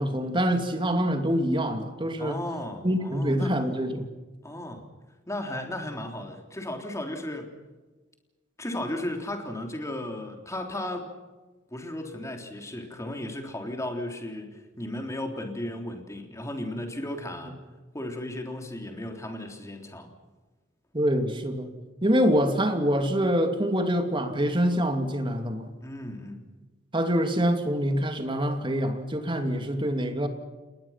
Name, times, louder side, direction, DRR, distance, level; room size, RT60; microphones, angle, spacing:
voice 1, 0.0-2.4 2.8-4.1 20.9-21.7 22.0-25.7 26.9-30.3, equal, 25° right, 6 dB, 2.7 m, -25 dB
voice 2, 2.2-3.5 4.4-4.9 5.3-7.5 8.6-11.1 11.7-17.5 17.9-20.1 25.8-26.4, left 1 dB, 15° left, 4 dB, 3.5 m, -35 dB
29.5 x 20.5 x 5.9 m, 1.2 s
head